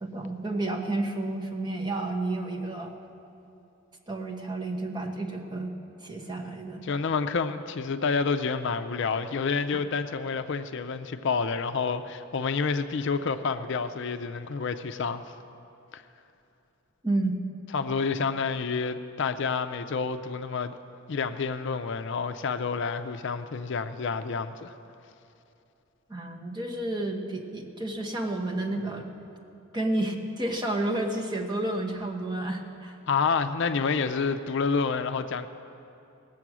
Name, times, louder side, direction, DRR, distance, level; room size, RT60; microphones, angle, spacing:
voice 1, 0.0-2.9 4.1-5.7 6.0-6.8 17.0-17.4 26.1-29.1 29.7-33.0, right 2 dB, 20° right, 0 dB, 1.1 m, -31 dB
voice 2, 6.8-15.2 15.9-16.0 17.7-20.7 21.1-24.7 33.1-35.5, left 5 dB, 60° left, 9 dB, 0.5 m, -29 dB
19.0 x 7.7 x 6.1 m, 2.7 s
head